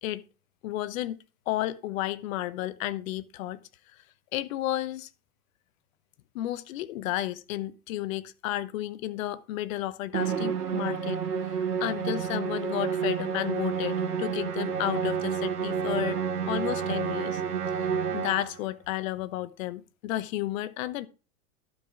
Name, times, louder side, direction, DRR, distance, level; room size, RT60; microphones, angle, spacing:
voice 1, 0.6-1.2 1.5-3.6 4.3-5.1 6.3-11.2 11.5-16.2 16.5-17.4 18.1-21.1, left 14 dB, 65° left, 1.1 m, -32 dB
Musical instrument, 10.1-18.6, right 7 dB, 80° right, 2.1 m, -30 dB
12.0 x 5.3 x 5.7 m
hypercardioid pair, 105°, 44 cm